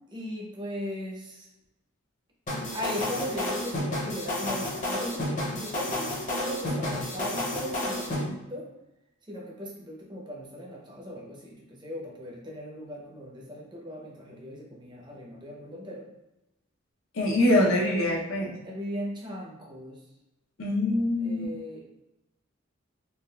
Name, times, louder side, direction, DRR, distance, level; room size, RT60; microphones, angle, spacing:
voice 1, 0.1-1.5 2.7-8.7 9.3-16.1 18.6-20.0 21.2-21.9, equal, 20° right, -2 dB, 0.6 m, -38 dB
sound 1, 2.5-8.2, left 1 dB, 40° left, 0.6 m, -31 dB
voice 2, 17.1-18.5 20.6-21.5, left 1 dB, 80° left, -1 dB, 0.6 m, -24 dB
3.4 x 2.3 x 2.2 m, 0.96 s
head